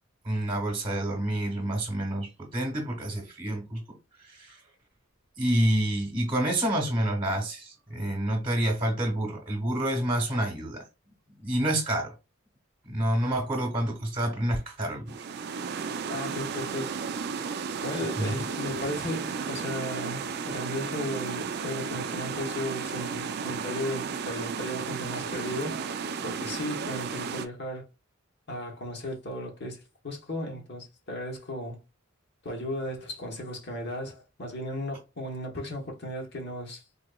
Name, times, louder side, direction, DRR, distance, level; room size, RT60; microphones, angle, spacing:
voice 1, 0.2-3.8 4.2-4.6 5.4-10.8 11.4-12.1 12.8-15.2 18.2-18.3, right 1 dB, 20° right, 1.1 m, -28 dB
sound 1, 15.1-27.5, right 5 dB, 50° right, 0.4 m, -34 dB
voice 2, 16.1-16.9 17.8-25.8 26.2-27.9 28.5-29.8 30.0-31.8 32.4-36.8, left 1 dB, 55° left, 1.0 m, -35 dB
3.9 x 2.9 x 2.2 m
head